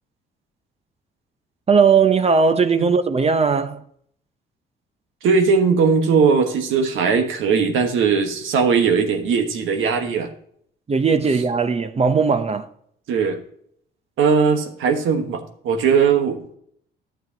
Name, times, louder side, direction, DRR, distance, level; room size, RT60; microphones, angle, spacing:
voice 1, 1.7-3.8 10.9-12.7, right 5 dB, 30° right, 0.7 m, -18 dB
voice 2, 5.2-10.3 13.1-13.4 14.2-16.6, right 5 dB, 85° right, 1.3 m, -19 dB
11.5 x 7.5 x 2.9 m
cardioid pair, 90°, 20 cm